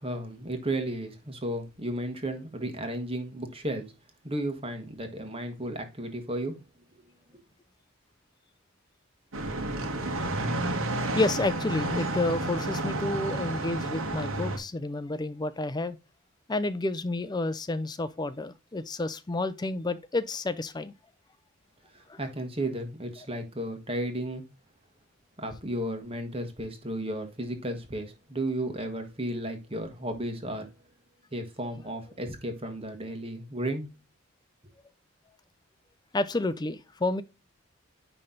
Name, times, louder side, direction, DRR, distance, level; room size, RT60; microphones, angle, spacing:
voice 1, 0.0-3.8 4.2-6.6 21.9-24.4 25.4-30.7 31.3-33.9, right 1 dB, 25° right, 1.4 m, -34 dB
sound 1, 9.3-14.6, right 2 dB, 80° right, 1.5 m, -31 dB
voice 2, 11.1-16.0 16.5-20.9 22.1-22.2 36.1-37.2, left 2 dB, 20° left, 0.5 m, -30 dB
9.9 x 3.3 x 3.8 m
head